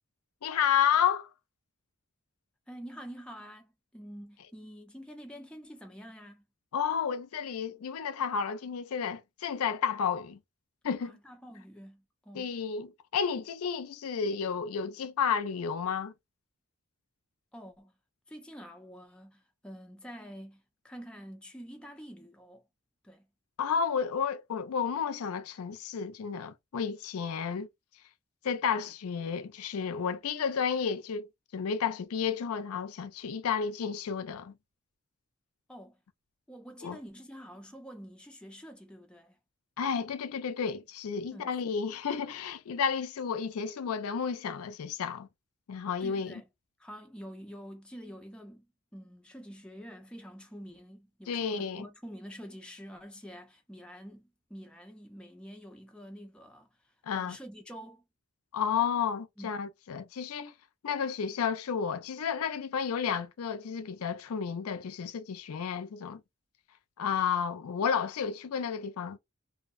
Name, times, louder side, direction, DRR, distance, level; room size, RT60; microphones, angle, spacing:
voice 1, 0.4-1.3 6.7-10.4 10.8-11.2 12.3-16.1 23.6-27.7 28.4-34.5 36.8-37.0 39.8-45.3 45.7-46.3 51.3-51.9 57.1-57.4 58.5-60.5 60.8-66.2 67.0-69.2, left 7 dB, 90° left, 0.4 m, -31 dB
voice 2, 2.7-6.4 11.0-12.6 17.5-17.9 18.3-22.6 23.0-23.3 35.7-36.0 36.5-39.4 41.3-41.6 46.0-46.5 46.8-48.7 48.9-58.0 59.4-59.6, equal, 5° left, 0.5 m, -47 dB
2.7 x 2.0 x 2.3 m
head